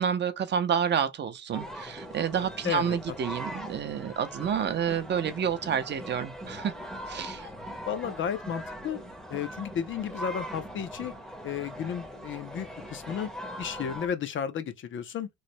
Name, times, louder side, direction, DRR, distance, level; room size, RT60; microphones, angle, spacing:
voice 1, 0.0-6.7 7.1-7.5, right 8 dB, 35° right, 0.5 m, -29 dB
sound 1, 1.5-14.1, equal, ahead, 0.6 m, -41 dB
voice 2, 2.6-3.0 7.9-9.0 9.3-11.1 11.4-13.3 13.6-15.3, left 8 dB, 40° left, 0.4 m, -33 dB
3.1 x 2.0 x 4.1 m
cardioid pair, 165°, 30 cm